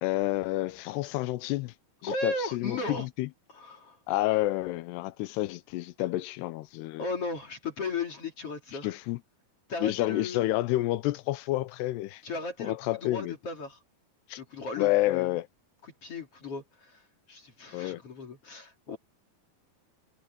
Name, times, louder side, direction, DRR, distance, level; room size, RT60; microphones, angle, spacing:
voice 1, 0.0-1.7 2.0-3.3 4.1-7.1 8.8-9.2 9.8-12.2 12.6-13.3 14.3-14.4 14.8-15.5 17.7-18.0, left 17 dB, 85° left, 2.8 m, -29 dB
voice 2, 2.0-3.1 3.5-4.0 7.0-8.9 9.7-10.5 12.2-12.8 13.0-13.8 14.4-15.3 15.8-17.0 17.3-19.0, left 3 dB, 40° left, 3.2 m, -36 dB
omnidirectional pair, 4.7 m